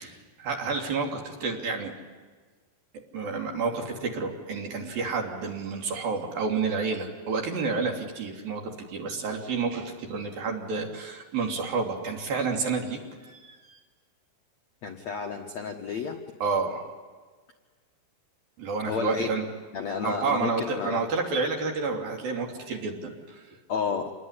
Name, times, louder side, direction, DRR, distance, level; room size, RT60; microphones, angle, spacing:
voice 1, 0.0-1.9 3.1-13.8 16.4-16.8 18.6-19.4 20.0-23.6, right 4 dB, 55° right, 1 dB, 4.5 m, -30 dB
voice 2, 14.8-16.2 18.8-19.4 19.7-21.0 23.7-24.1, left 5 dB, 60° left, 3 dB, 1.8 m, -31 dB
27.5 x 21.0 x 10.0 m, 1.5 s
omnidirectional pair, 5.1 m